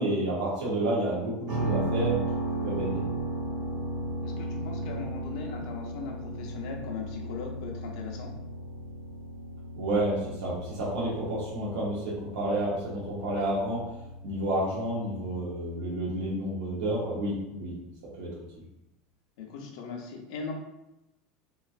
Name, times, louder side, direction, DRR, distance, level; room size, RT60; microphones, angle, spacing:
voice 1, 0.0-2.2 2.6-3.0 9.7-13.8 14.2-17.8 18.2-18.3, right 1 dB, 85° right, -6 dB, 0.8 m, -30 dB
sound 1, 1.5-17.3, right 2 dB, 35° right, 0.7 m, -36 dB
voice 2, 4.2-8.3 19.4-20.5, left 5 dB, 65° left, 1 dB, 0.6 m, -39 dB
3.1 x 2.4 x 2.4 m, 0.91 s
supercardioid pair, 170°, 3 cm